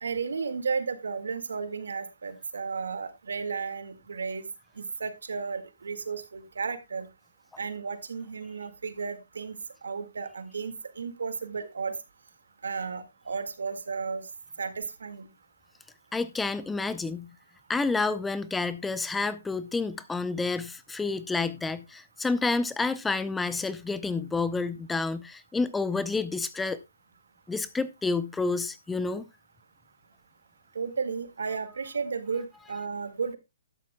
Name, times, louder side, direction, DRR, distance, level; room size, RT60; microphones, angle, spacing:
voice 1, 0.0-4.5 4.8-7.1 7.6-9.6 9.8-12.0 12.6-14.2 14.6-15.3 30.8-33.4, right 5 dB, 85° right, 1.8 m, -33 dB
voice 2, 16.1-17.3 17.7-26.8 27.5-29.3, left 3 dB, 5° left, 0.5 m, -29 dB
12.5 x 12.0 x 2.2 m
hypercardioid pair, 150°, 0 cm